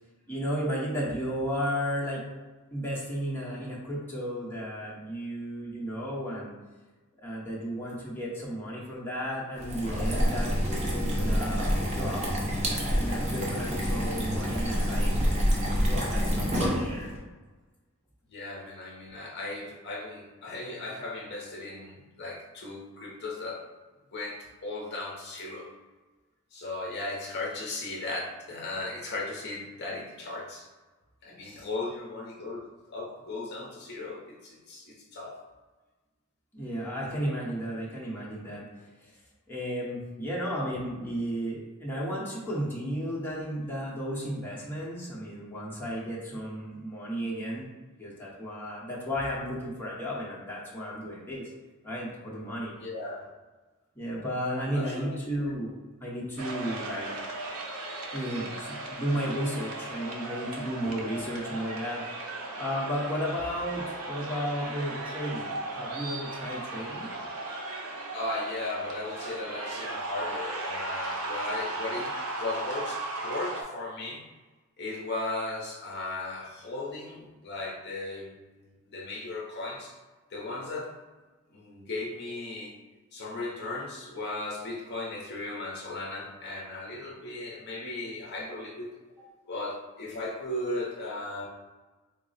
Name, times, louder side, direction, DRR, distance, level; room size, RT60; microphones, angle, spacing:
voice 1, 0.3-2.2 2.7-6.5 7.2-11.7 11.9-12.2 12.9-15.1 15.7-17.1 31.4-31.7 36.5-38.6 39.0-39.1 39.5-47.7 48.0-51.5 51.8-52.7 53.9-55.7 56.0-57.1 58.1-62.0 62.6-67.1, equal, 10° left, -6 dB, 0.8 m, -33 dB
sound 1, 9.6-17.2, equal, 30° right, 0.7 m, -27 dB
voice 2, 18.3-23.6 24.1-25.7 26.5-30.7 31.2-35.4 52.8-53.3 54.7-55.3 68.1-74.2 74.8-78.3 78.9-79.9 80.3-80.9 81.5-82.7 83.1-88.9 89.5-91.5, left 2 dB, 50° left, -2 dB, 0.6 m, -36 dB
sound 2, 56.4-73.6, right 2 dB, 80° right, 0.6 m, -36 dB
3.9 x 2.0 x 3.9 m, 1.3 s
head